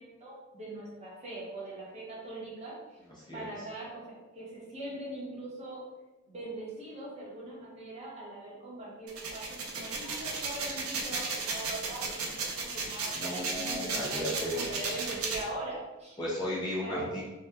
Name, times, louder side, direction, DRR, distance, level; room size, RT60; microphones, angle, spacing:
voice 1, 0.0-3.0 3.3-5.8 6.3-16.2 16.8-17.1, right 2 dB, 30° right, -5 dB, 0.8 m, -41 dB
voice 2, 3.2-3.5 13.1-14.7 16.2-17.2, left 1 dB, 20° left, -6 dB, 0.5 m, -35 dB
sound 1, 9.1-15.4, right 4 dB, 85° right, 0.5 m, -34 dB
2.8 x 2.1 x 3.4 m, 1.1 s
head